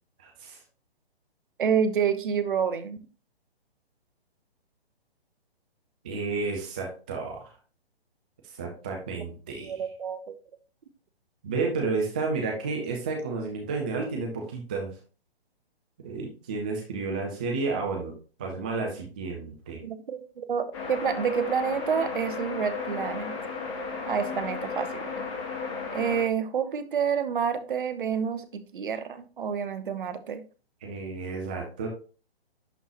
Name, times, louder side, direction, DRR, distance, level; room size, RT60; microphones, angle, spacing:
voice 1, 0.2-0.6 6.0-7.5 8.5-9.7 11.4-14.9 16.0-18.1 18.4-19.8 30.8-31.9, right 4 dB, 10° right, 1 dB, 0.3 m, -31 dB
voice 2, 1.6-3.0 9.5-10.2 19.8-23.3 24.1-25.0 25.9-30.4, right 7 dB, 55° right, 11 dB, 0.9 m, -28 dB
sound 1, 20.7-26.2, left 4 dB, 30° left, 1.5 m, -34 dB
11.0 x 3.7 x 2.9 m, 0.35 s
figure-of-eight pair, 130°, 31 cm